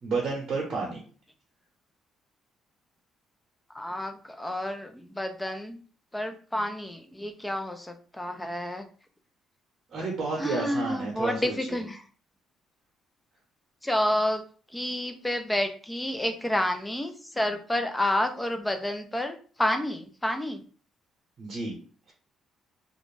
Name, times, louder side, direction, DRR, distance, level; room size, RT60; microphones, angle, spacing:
voice 1, 0.0-1.0 9.9-11.8 21.4-21.8, right 3 dB, 40° right, -3 dB, 0.8 m, -31 dB
voice 2, 3.7-5.8 6.1-8.9 10.4-12.0 13.8-14.4 14.7-20.6, left 1 dB, 5° left, 5 dB, 0.3 m, -29 dB
2.5 x 2.1 x 3.1 m, 0.41 s
cardioid pair, 150°, 0 cm